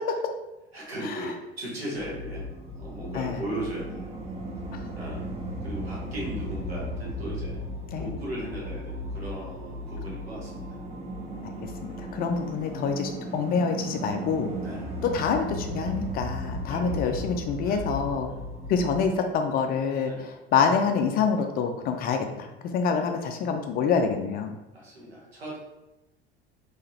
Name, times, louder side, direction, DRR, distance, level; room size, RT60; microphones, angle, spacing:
voice 1, 0.7-2.5 2.8-4.1 4.9-5.3 5.6-7.6 8.0-10.7 14.6-14.9 16.7-17.2 17.6-17.9 18.3-18.4 20.0-20.3 22.8-23.1 24.7-25.6, right 1 dB, 80° right, -4 dB, 1.2 m, -37 dB
sound 1, 2.0-19.1, equal, 20° right, 0.7 m, -36 dB
voice 2, 12.0-14.5 15.0-18.3 18.7-22.5 22.7-24.6, left 5 dB, 30° left, 5 dB, 0.4 m, -26 dB
3.7 x 2.9 x 2.8 m, 0.98 s
figure-of-eight pair, 70°, 31 cm